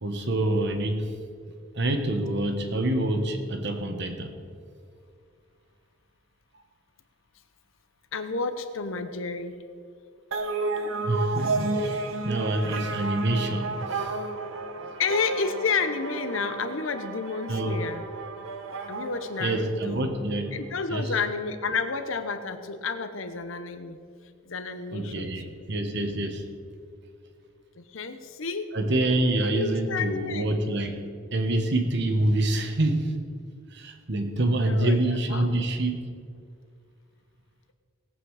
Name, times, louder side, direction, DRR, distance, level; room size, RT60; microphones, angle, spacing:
voice 1, 0.0-1.1 1.7-4.3 11.0-14.1 17.5-17.8 19.4-20.5 20.9-21.1 24.9-26.4 28.7-31.0 31.3-33.1 33.7-36.0, right 1 dB, 60° right, 6 dB, 1.3 m, -26 dB
voice 2, 8.1-9.6 15.0-18.0 18.9-20.1 20.5-24.0 24.4-25.5 27.8-28.7 29.5-30.5 34.5-35.5, left 4 dB, 70° left, 9 dB, 0.9 m, -31 dB
sound 1, 10.3-20.1, right 3 dB, 75° right, 1.2 m, -32 dB
18.0 x 8.5 x 4.9 m, 2.2 s
head